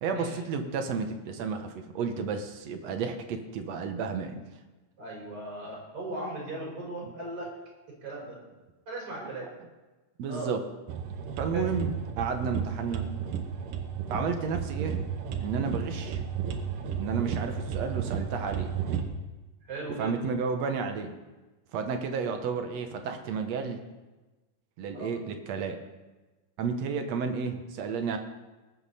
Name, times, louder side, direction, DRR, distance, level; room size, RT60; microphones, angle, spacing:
voice 1, 0.0-4.4 7.0-7.1 10.2-10.6 11.4-13.1 14.1-15.0 15.4-16.2 17.0-18.7 20.0-21.2 21.7-23.8 24.8-25.8 26.6-28.2, right 5 dB, 65° right, 6 dB, 2.1 m, -32 dB
voice 2, 5.0-7.5 8.0-8.4 8.9-9.5 10.3-10.5 11.5-11.7 14.1-14.3 19.6-20.1 24.9-25.1, right 1 dB, 45° right, -4 dB, 5.8 m, -37 dB
sound 1, 10.9-19.0, right 7 dB, 85° right, 2.8 m, -33 dB
20.0 x 8.8 x 4.2 m, 1.2 s
omnidirectional pair, 3.6 m